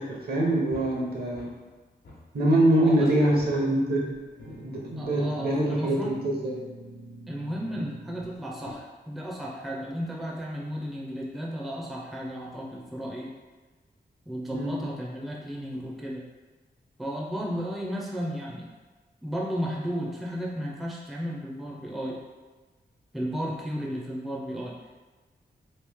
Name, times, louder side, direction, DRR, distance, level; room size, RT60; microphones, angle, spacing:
voice 1, 0.0-1.5 2.3-4.0 4.5-6.5 14.5-14.8, right 1 dB, 60° right, -3 dB, 0.9 m, -24 dB
sound 1, 0.7-1.7 2.0-2.9 3.4-8.7, equal, 80° left, 1.0 m, -44 dB
voice 2, 2.8-3.1 5.0-6.2 7.3-13.3 14.3-16.2 17.0-18.7 19.2-22.2 23.1-24.9, equal, ahead, -4 dB, 0.4 m, -34 dB
3.1 x 2.8 x 3.5 m, 1.3 s
wide cardioid pair, 165°, 18 cm